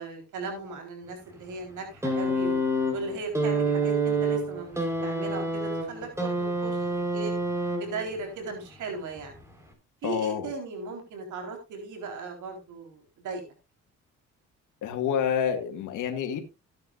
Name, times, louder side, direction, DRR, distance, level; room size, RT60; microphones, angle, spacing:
voice 1, 0.0-2.6 2.9-6.8 7.1-7.3 7.8-9.3 10.0-13.4, right 4 dB, 80° right, 4.1 m, -37 dB
sound 1, 2.0-8.2 9.2-9.3, right 2 dB, 10° right, 4.4 m, -27 dB
voice 2, 10.0-10.5 14.8-16.4, left 8 dB, 85° left, 2.1 m, -28 dB
16.0 x 9.5 x 2.5 m
cardioid pair, 90°, 30 cm